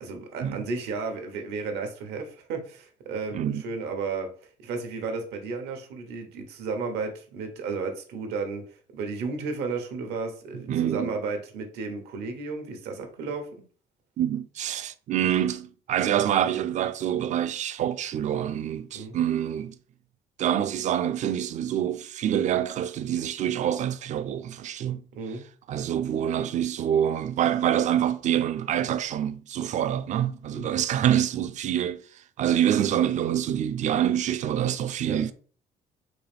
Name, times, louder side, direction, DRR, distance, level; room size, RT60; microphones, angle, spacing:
voice 1, 0.0-4.3 4.6-13.5 18.9-19.1 25.1-25.4 30.5-30.7 35.0-35.2, right 4 dB, 85° right, 1.0 m, -33 dB
voice 2, 10.7-11.1 14.2-19.7 20.4-25.0 25.7-35.3, right 10 dB, 45° right, 0.4 m, -26 dB
3.9 x 2.5 x 3.4 m
cardioid pair, 110°, 17 cm